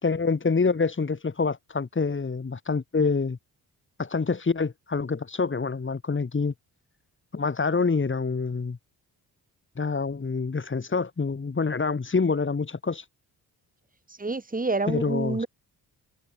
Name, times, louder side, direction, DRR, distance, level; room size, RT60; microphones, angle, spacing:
voice 1, 0.0-3.4 4.0-6.5 7.3-8.8 9.8-13.1 14.9-15.4, left 4 dB, 30° left, 5.0 m, -26 dB
voice 2, 14.1-15.5, right 3 dB, 20° right, 7.1 m, -28 dB
cardioid pair, 105°, 38 cm